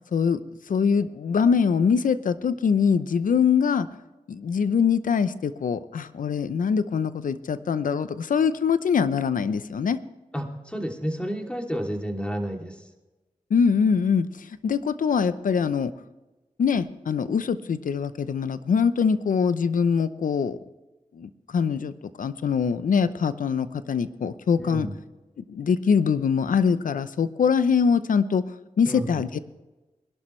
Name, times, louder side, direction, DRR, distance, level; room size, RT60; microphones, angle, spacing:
voice 1, 0.7-3.9 4.3-10.0 13.5-15.9 16.6-20.6 21.1-21.9 22.2-24.9 25.4-28.4 28.8-29.4, left 6 dB, 80° left, 14 dB, 0.7 m, -23 dB
voice 2, 10.3-12.8 24.6-24.9 28.8-29.2, equal, 10° left, 2 dB, 2.9 m, -31 dB
21.5 x 11.5 x 3.2 m, 1.1 s
cardioid pair, 50°, 14 cm